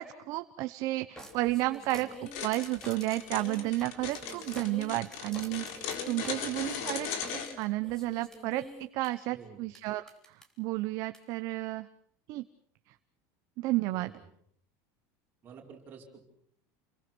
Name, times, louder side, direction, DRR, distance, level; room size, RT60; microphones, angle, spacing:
voice 1, 0.0-11.9 12.3-12.4 13.6-14.1, right 18 dB, 40° right, 10 dB, 0.9 m, -32 dB
sound 1, 1.2-9.1 9.7-9.8 10.1-10.4 11.1-11.2, equal, 5° left, 3.3 m, -47 dB
sound 2, 2.3-7.5, left 7 dB, 55° left, 4.1 m, -38 dB
voice 2, 6.2-6.5 9.3-9.7 13.9-14.2 15.4-16.3, right 6 dB, 20° right, -1 dB, 5.6 m, -51 dB
29.5 x 22.5 x 6.2 m, 0.66 s
cardioid pair, 180°, 9 cm